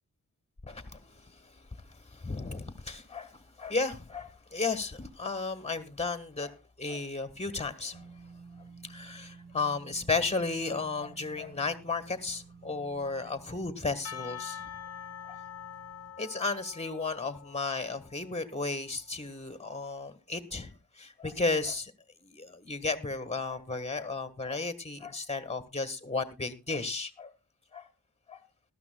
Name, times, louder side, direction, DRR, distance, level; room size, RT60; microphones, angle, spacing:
voice 1, 0.6-8.1 8.8-14.6 15.3-15.4 16.2-21.9 22.2-27.3 27.7-27.9 28.3-28.4, left 3 dB, 15° left, 1.5 m, -34 dB
sound 1, 7.9-16.1, right 5 dB, 90° right, 1.8 m, -53 dB
Percussion / Church bell, 14.0-18.6, left 9 dB, 40° left, 0.7 m, -45 dB
19.5 x 13.0 x 2.3 m
wide cardioid pair, 65°, 37 cm